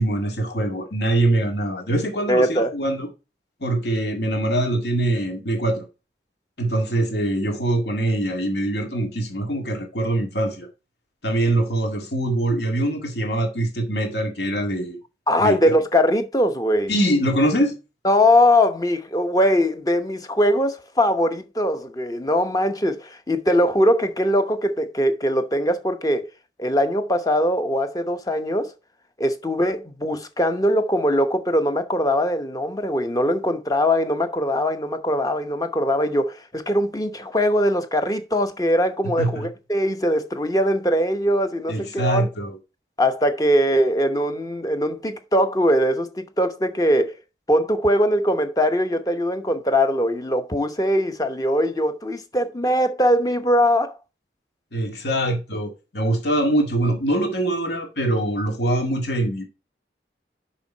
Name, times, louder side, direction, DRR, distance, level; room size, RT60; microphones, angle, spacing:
voice 1, 0.0-3.1 3.6-5.9 6.6-10.7 11.2-15.0 15.4-15.6 16.9-17.7 39.2-39.5 41.7-42.6 54.7-59.5, right 1 dB, 65° left, 2.1 m, -23 dB
voice 2, 2.3-2.7 15.3-16.9 18.0-26.3 26.6-28.7 29.2-42.3 43.0-47.1 47.5-53.9, equal, 20° left, 0.9 m, -21 dB
6.8 x 5.4 x 4.4 m
head